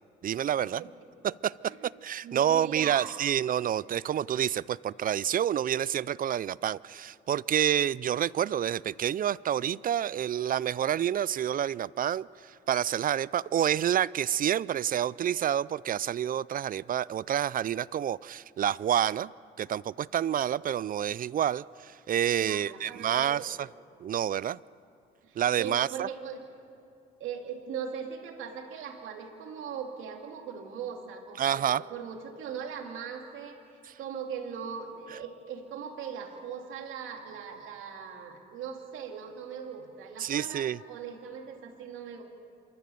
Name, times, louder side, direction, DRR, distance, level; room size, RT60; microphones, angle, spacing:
voice 1, 0.2-0.8 1.2-19.3 19.6-23.7 24.0-24.6 25.4-26.1 31.4-31.8 33.9-34.0 40.2-40.8, right 10 dB, 45° right, 0.4 m, -28 dB
voice 2, 2.2-3.1 22.4-23.5 25.2-26.4 27.2-33.6 34.0-42.2, right 7 dB, 85° right, 2.5 m, -40 dB
28.0 x 13.5 x 7.0 m
cardioid pair, 90°, 20 cm